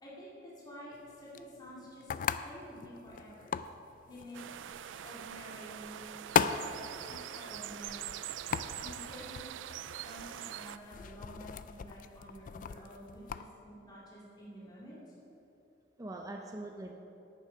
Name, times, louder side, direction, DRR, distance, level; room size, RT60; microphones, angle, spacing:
voice 1, 0.0-2.1 2.4-3.5 4.1-4.4 5.0-5.9 6.4-8.1 8.8-9.5 10.0-15.1, equal, 25° left, -7 dB, 2.4 m, -50 dB
sound 1, 0.9-13.4, left 6 dB, 45° left, 0.3 m, -39 dB
sound 2, 4.3-10.8, right 11 dB, 80° right, 0.3 m, -43 dB
voice 2, 5.9-6.3 11.7-11.9 16.0-16.9, right 2 dB, 20° right, 1 dB, 0.6 m, -44 dB
9.4 x 9.2 x 5.7 m, 2.9 s
head